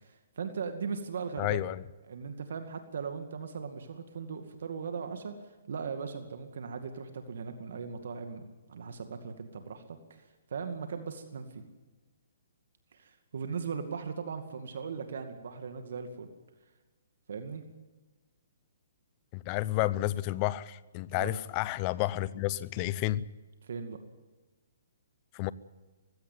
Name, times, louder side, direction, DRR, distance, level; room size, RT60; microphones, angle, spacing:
voice 1, 0.0-1.6 2.0-8.4 8.7-11.7 12.9-16.3 17.3-17.6 21.2-21.4 23.6-24.0, right 5 dB, 70° right, 2.2 m, -38 dB
voice 2, 1.4-1.8 19.3-23.2 25.3-25.5, left 16 dB, 30° left, 0.7 m, -31 dB
19.0 x 16.5 x 9.4 m
hypercardioid pair, 155°, 0 cm